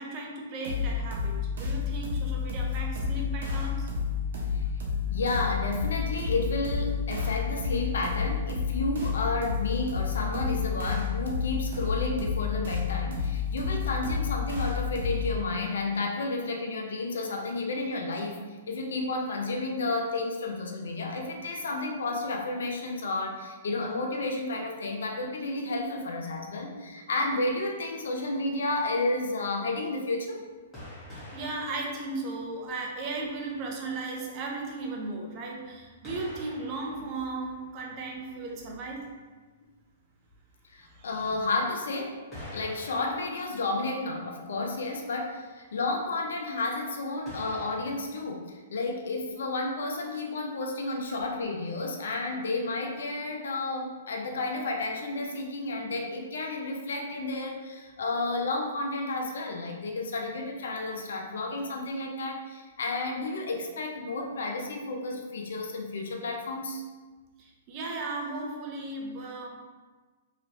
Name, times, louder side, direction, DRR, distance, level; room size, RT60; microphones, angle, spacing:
voice 1, 0.0-3.9 31.3-39.1 40.8-41.4 50.8-50.9 67.4-69.5, right 3 dB, 35° right, 0 dB, 0.7 m, -36 dB
sound 1, 0.6-15.4, left 5 dB, 70° right, 0.8 m, -30 dB
voice 2, 5.1-18.4 18.7-30.4 40.7-42.2 42.5-66.8, left 2 dB, 80° left, 1 dB, 0.6 m, -31 dB
sound 2, 30.7-32.9 33.3-33.4 36.0-37.9 40.8-40.9 42.3-44.2 44.6-44.7 47.3-47.8, left 1 dB, 15° left, 1.5 m, -46 dB
3.0 x 3.0 x 2.7 m, 1.3 s
hypercardioid pair, 135°, 0 cm